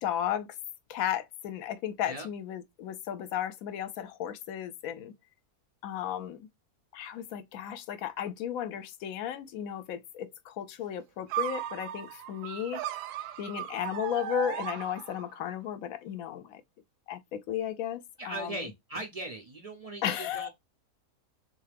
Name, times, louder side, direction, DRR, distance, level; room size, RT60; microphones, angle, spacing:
voice 1, 0.0-0.5 0.9-5.1 5.8-6.5 6.9-12.8 13.4-16.6 17.1-18.7 20.0-20.5, left 10 dB, 70° left, 1.0 m, -34 dB
sound 1, 11.3-15.4, right 10 dB, 85° right, 1.1 m, -36 dB
voice 2, 18.2-20.5, right 2 dB, 60° right, 0.3 m, -39 dB
3.7 x 2.6 x 3.3 m
omnidirectional pair, 1.7 m